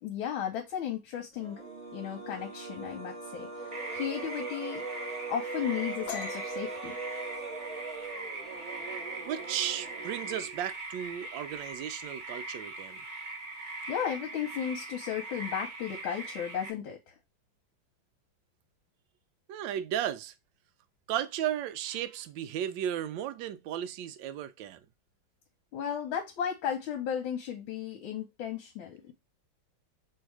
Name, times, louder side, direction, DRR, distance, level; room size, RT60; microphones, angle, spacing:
voice 1, 0.0-1.6 1.9-4.8 5.3-7.0 13.9-17.1 25.7-29.1, left 9 dB, 80° left, 1.6 m, -35 dB
sound 1, 1.3-10.7, right 3 dB, 20° right, 1.3 m, -40 dB
sound 2, 3.7-16.7, right 2 dB, 40° right, 0.7 m, -41 dB
sound 3, 6.1-9.5 9.8-10.2 10.5-11.1 11.3-12.1, left 6 dB, 60° left, 1.1 m, -45 dB
voice 2, 9.3-13.0 19.5-20.3 21.1-24.8, right 10 dB, 75° right, 1.1 m, -35 dB
3.2 x 2.8 x 4.6 m
omnidirectional pair, 2.3 m